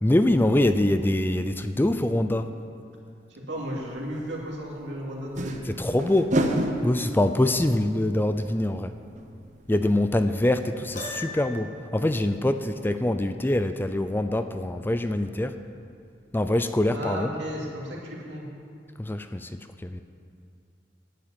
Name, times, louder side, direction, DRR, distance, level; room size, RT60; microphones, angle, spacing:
voice 1, 0.0-2.5 5.6-6.4 6.8-8.9 9.7-15.6 16.3-17.3 19.0-20.0, left 1 dB, 10° left, 9 dB, 0.4 m, -24 dB
voice 2, 3.5-5.7 16.9-18.5, equal, 90° right, -3 dB, 2.7 m, -34 dB
sound 1, 3.8-3.9 5.2-9.7 10.0-10.1 10.4-10.5, right 1 dB, 45° right, 1.0 m, -31 dB
Piano, 10.9-11.8, left 2 dB, 45° left, 1.7 m, -37 dB
11.0 x 7.7 x 9.0 m, 2.5 s
head